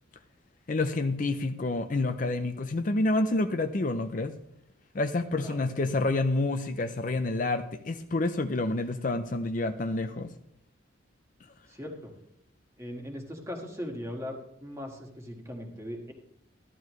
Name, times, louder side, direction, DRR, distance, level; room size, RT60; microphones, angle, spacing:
voice 1, 0.7-4.3 4.9-10.3, left 2 dB, 40° left, 8 dB, 0.5 m, -28 dB
voice 2, 11.7-12.1 12.8-16.1, left 1 dB, 15° right, 1 dB, 1.7 m, -39 dB
14.0 x 11.0 x 3.2 m, 0.76 s
head